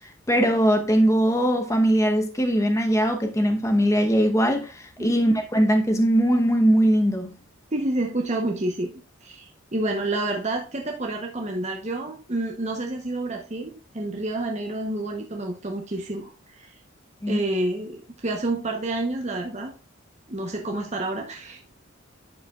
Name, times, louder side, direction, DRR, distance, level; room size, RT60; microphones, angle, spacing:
voice 1, 0.3-7.3 17.2-17.4, equal, 15° left, 0.9 m, -21 dB
voice 2, 7.7-8.9 9.2-16.7 17.3-19.7 20.3-21.6, right 2 dB, 35° right, 0.9 m, -29 dB
10.5 x 5.5 x 2.4 m
head